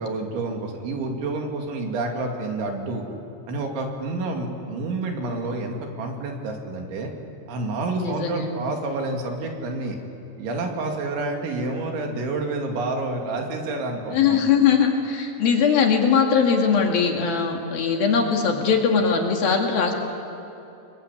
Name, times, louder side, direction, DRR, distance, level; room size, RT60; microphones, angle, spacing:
voice 1, 0.0-3.0 3.5-7.1 7.5-10.0 10.4-14.4, right 2 dB, 80° right, 2 dB, 5.0 m, -29 dB
voice 2, 8.0-8.4 14.1-19.9, left 6 dB, 60° left, 2 dB, 3.5 m, -20 dB
29.0 x 21.5 x 8.4 m, 2.9 s
omnidirectional pair, 5.3 m